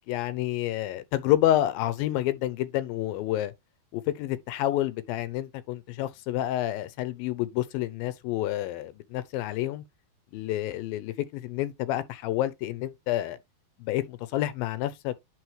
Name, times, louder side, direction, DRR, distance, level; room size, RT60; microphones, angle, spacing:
voice 1, 0.1-3.5 3.9-9.8 10.3-13.4 13.8-15.2, left 14 dB, 85° left, 2.4 m, -29 dB
11.0 x 3.8 x 3.2 m
omnidirectional pair, 4.2 m